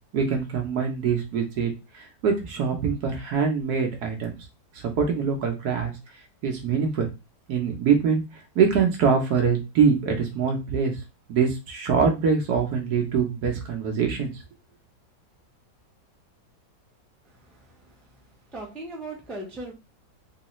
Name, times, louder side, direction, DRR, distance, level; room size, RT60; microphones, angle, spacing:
voice 1, 0.1-4.4 4.7-5.9 6.4-7.1 7.5-8.2 8.5-11.0 11.3-14.3, right 6 dB, 65° right, 3 dB, 1.2 m, -24 dB
voice 2, 17.3-18.1 18.5-19.7, right 2 dB, ahead, -2 dB, 0.4 m, -39 dB
3.2 x 3.1 x 3.0 m, 0.26 s
omnidirectional pair, 2.0 m